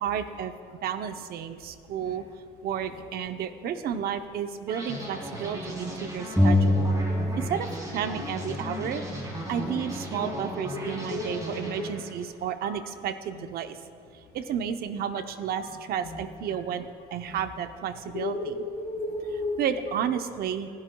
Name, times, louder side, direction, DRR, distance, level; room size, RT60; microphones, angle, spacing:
voice 1, 0.0-0.5 0.8-2.2 2.6-6.8 7.4-9.0 9.5-13.8 14.3-16.9 17.1-18.6 19.6-20.7, right 8 dB, 65° right, 8 dB, 0.8 m, -32 dB
sound 1, 4.7-12.4, equal, 20° right, 3.5 m, -36 dB
sound 2, 6.4-7.9 8.1-9.9, left 1 dB, 5° right, 2.3 m, -26 dB
voice 2, 10.8-11.8 12.6-12.7 16.0-16.2 17.3-17.4 18.1-19.6, left 3 dB, 70° left, -2 dB, 3.7 m, -34 dB
26.5 x 11.0 x 2.3 m, 2.3 s
cardioid pair, 110°, 17 cm